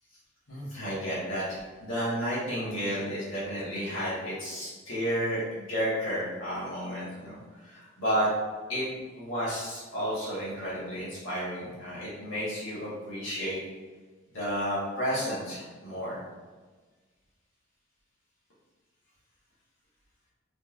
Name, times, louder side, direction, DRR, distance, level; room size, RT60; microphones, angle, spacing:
voice 1, 0.5-8.3 8.7-8.8 9.1-13.6 14.3-16.2, equal, 80° left, -9 dB, 1.4 m, -32 dB
3.8 x 3.2 x 2.5 m, 1.4 s
head